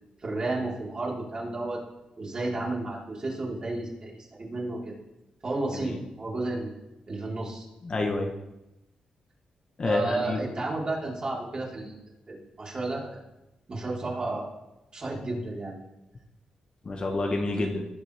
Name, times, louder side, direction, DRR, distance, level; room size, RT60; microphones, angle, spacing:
voice 1, 0.2-1.8 2.2-4.9 5.4-6.7 7.1-7.6 9.8-12.0 12.3-13.1 13.7-14.4 14.9-15.8, right 2 dB, 35° right, -5 dB, 4.3 m, -32 dB
voice 2, 7.8-8.3 9.8-10.4 16.8-17.8, left 2 dB, 40° left, 2 dB, 1.4 m, -28 dB
18.5 x 7.5 x 3.6 m, 0.94 s
cardioid pair, 95°, 2 cm